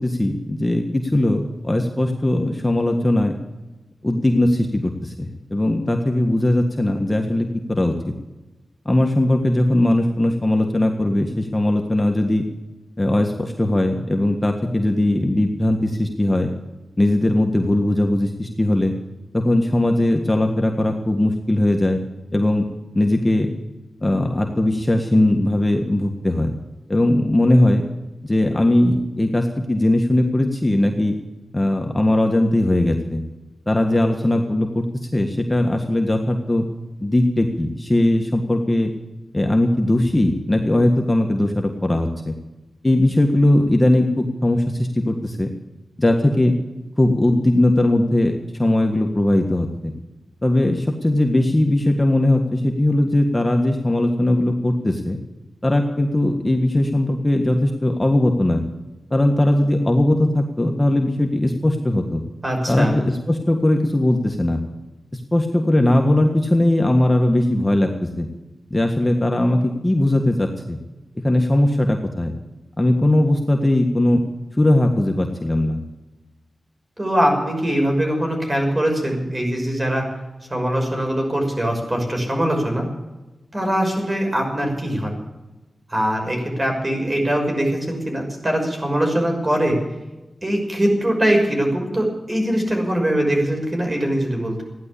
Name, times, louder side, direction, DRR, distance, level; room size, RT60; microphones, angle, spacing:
voice 1, 0.0-3.3 4.0-7.9 8.8-12.4 13.0-16.5 17.0-18.9 19.3-22.0 22.3-22.7 22.9-23.5 24.0-26.5 26.9-27.8 28.2-31.1 31.5-33.2 33.7-34.8 35.1-36.6 37.0-38.9 39.3-42.3 42.8-45.5 46.0-46.5 47.0-49.9 50.4-55.2 55.6-58.6 59.1-62.2 62.7-64.6 65.1-68.3 68.7-70.8 71.2-72.3 72.8-74.2 74.5-75.8, left 1 dB, 20° left, 3 dB, 1.6 m, -19 dB
voice 2, 62.4-63.0 77.0-80.1 80.5-82.9 83.5-85.2 85.9-89.8 90.4-94.6, right 1 dB, 30° right, 1 dB, 6.0 m, -22 dB
15.5 x 10.5 x 8.5 m, 1.1 s
wide cardioid pair, 80°, 0 cm